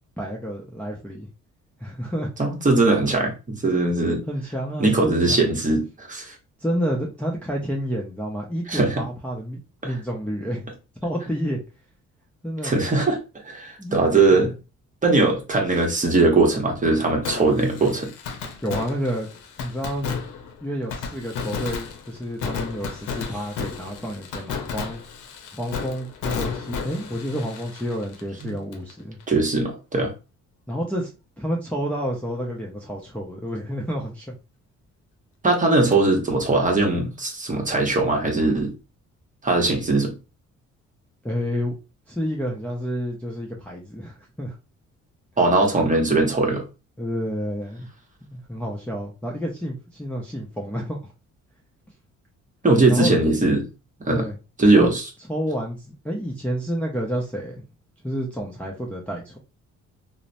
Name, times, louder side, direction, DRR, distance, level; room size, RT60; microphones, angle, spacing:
voice 1, 0.2-1.3 1.8-2.3 4.3-5.5 6.6-10.6 11.0-11.6 12.4-12.8 13.8-14.0 18.6-19.3 19.6-20.1 20.6-25.0 25.6-29.2 30.7-34.4 41.2-41.7 42.1-44.6 47.0-47.9 48.3-51.1 52.9-53.1 54.1-54.4 54.8-54.9 55.3-57.6 58.0-59.4, equal, 5° left, 0.5 m, -29 dB
voice 2, 2.4-4.2 4.8-6.3 8.7-9.0 9.8-9.9 12.6-13.2 13.4-14.5 15.0-18.1 28.4-28.5 29.3-30.1 35.4-38.7 39.4-40.1 45.4-46.6 52.6-53.6 54.0-54.2 54.6-55.0, right 2 dB, 25° right, 0.9 m, -20 dB
Fireworks, 17.2-28.9 29.2-29.3 35.9-36.0, left 5 dB, 90° left, 0.6 m, -33 dB
2.9 x 2.0 x 2.5 m
cardioid pair, 90°, 30 cm